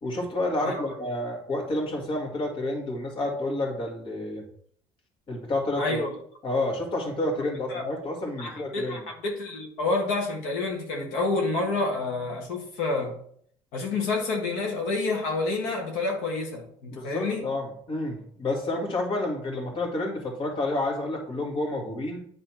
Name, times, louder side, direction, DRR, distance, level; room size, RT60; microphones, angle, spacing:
voice 1, 0.0-4.4 5.3-6.0 6.4-9.0 16.9-22.2, left 2 dB, 45° left, 2.0 m, -29 dB
voice 2, 5.8-6.1 7.7-7.8 8.4-13.2 13.7-17.5, left 3 dB, 85° left, 1.6 m, -28 dB
9.1 x 3.3 x 4.5 m
cardioid pair, 115°, 12 cm